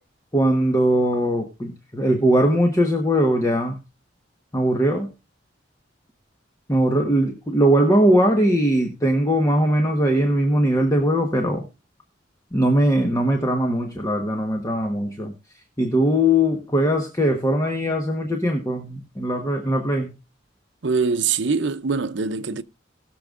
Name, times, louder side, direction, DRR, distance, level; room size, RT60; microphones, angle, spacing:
voice 1, 0.3-3.7 4.5-5.1 6.7-11.6 12.5-15.3 15.8-20.1, equal, 15° left, 1.2 m, -20 dB
voice 2, 20.8-22.6, right 5 dB, 70° right, 0.7 m, -23 dB
20.5 x 6.9 x 2.5 m
head